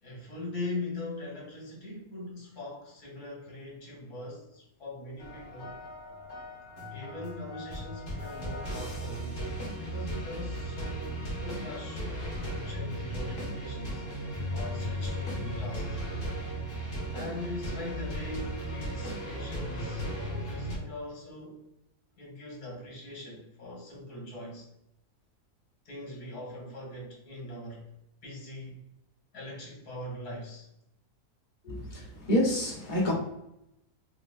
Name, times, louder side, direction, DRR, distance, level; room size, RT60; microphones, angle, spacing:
voice 1, 0.0-5.8 6.9-9.4 9.8-12.1 12.5-14.0 14.5-16.0 17.1-21.6 22.2-24.7 25.9-27.9 28.2-28.8 29.3-30.7, left 1 dB, 80° left, -3 dB, 2.0 m, -41 dB
sound 1, 5.2-20.8, equal, 55° left, 1.8 m, -36 dB
voice 2, 31.6-33.1, left 1 dB, 35° left, -4 dB, 1.1 m, -28 dB
5.0 x 2.3 x 2.5 m, 0.83 s
omnidirectional pair, 1.7 m